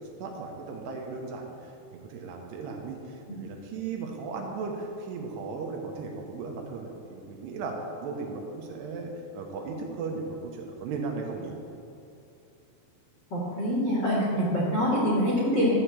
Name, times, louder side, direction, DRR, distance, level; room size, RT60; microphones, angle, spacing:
voice 1, 0.2-11.5, right 4 dB, 75° right, 1 dB, 2.8 m, -36 dB
voice 2, 13.3-15.7, equal, 75° left, -6 dB, 1.0 m, -25 dB
12.0 x 5.0 x 7.4 m, 2.7 s
omnidirectional pair, 5.3 m